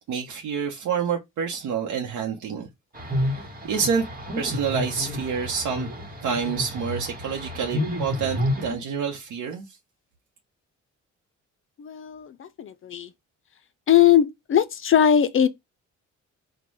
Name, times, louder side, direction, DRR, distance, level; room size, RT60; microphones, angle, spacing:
voice 1, 0.1-2.7 3.6-4.1 4.4-5.9 6.2-9.7, right 6 dB, 80° right, 0.8 m, -28 dB
sound 1, 2.9-8.7, left 1 dB, 30° right, 1.3 m, -30 dB
voice 2, 11.8-13.1 13.9-15.5, left 9 dB, 45° left, 0.5 m, -20 dB
4.3 x 2.2 x 4.6 m
cardioid pair, 90°, 30 cm